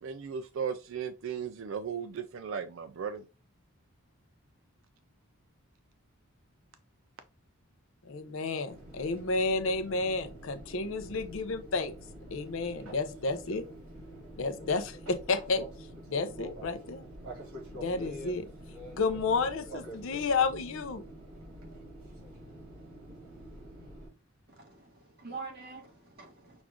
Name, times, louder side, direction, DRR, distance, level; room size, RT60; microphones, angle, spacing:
voice 1, 0.0-3.2, right 7 dB, 60° right, 0.3 m, -36 dB
voice 2, 8.1-11.9 12.3-13.6 14.4-15.6 16.1-17.0 17.8-18.4 18.9-21.0, left 4 dB, 65° left, 0.6 m, -31 dB
Fixed-wing aircraft airplane, 8.7-24.1, right 1 dB, 75° right, 2.1 m, -46 dB
voice 3, 24.5-26.6, right 4 dB, 45° right, 1.6 m, -45 dB
6.0 x 2.4 x 3.6 m
head